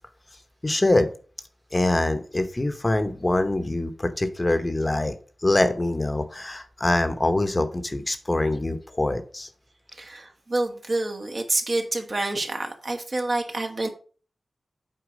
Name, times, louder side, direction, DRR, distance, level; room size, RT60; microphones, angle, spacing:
voice 1, 0.6-1.1 1.7-5.1 5.4-9.5, left 2 dB, 25° left, 9 dB, 0.9 m, -24 dB
voice 2, 10.0-13.9, right 2 dB, 50° right, 4 dB, 1.5 m, -28 dB
8.0 x 4.5 x 5.2 m, 0.40 s
wide cardioid pair, 80°, 0 cm